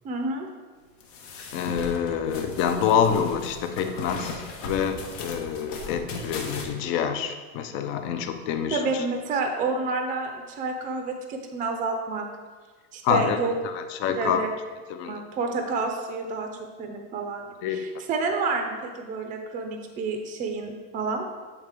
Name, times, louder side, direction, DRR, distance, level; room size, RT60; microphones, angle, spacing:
voice 1, 0.0-0.5 8.7-12.3 12.9-13.5 14.2-14.5 15.1-21.3, right 3 dB, 20° right, 4 dB, 0.5 m, -29 dB
sound 1, 1.0-6.6, left 3 dB, 80° left, 1.1 m, -37 dB
voice 2, 1.5-8.8 13.0-13.4 13.6-14.4 14.9-15.2 17.6-17.9, left 8 dB, 35° left, 8 dB, 0.4 m, -26 dB
8.1 x 3.8 x 3.4 m, 1.4 s
supercardioid pair, 150°, 37 cm